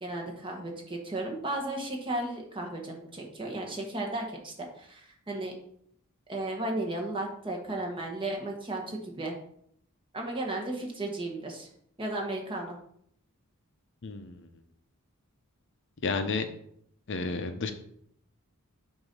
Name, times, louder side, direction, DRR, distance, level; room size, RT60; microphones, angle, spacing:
voice 1, 0.0-5.5 6.3-9.3 10.1-11.7 12.0-12.8, right 2 dB, 25° right, 1 dB, 1.2 m, -34 dB
voice 2, 14.0-14.5 16.0-16.5 17.1-17.7, left 4 dB, 55° left, 8 dB, 0.6 m, -31 dB
7.9 x 2.7 x 5.3 m, 0.68 s
head